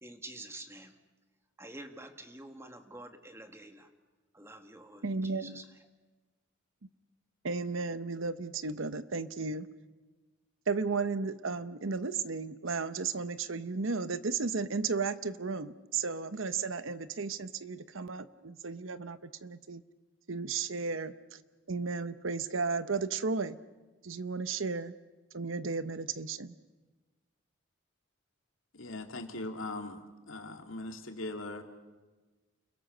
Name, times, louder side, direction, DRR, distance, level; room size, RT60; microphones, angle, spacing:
voice 1, 0.0-1.0 1.6-3.9 4.3-5.6, right 1 dB, 15° right, 6 dB, 1.7 m, -48 dB
voice 2, 5.0-5.6 7.4-9.7 10.7-19.8 20.3-21.1 21.7-23.6 24.0-24.9 25.3-26.5, right 4 dB, 80° right, 13 dB, 0.9 m, -34 dB
voice 3, 28.7-30.0 30.3-31.6, left 2 dB, 85° left, 4 dB, 2.6 m, -40 dB
29.5 x 22.5 x 6.7 m, 1.3 s
head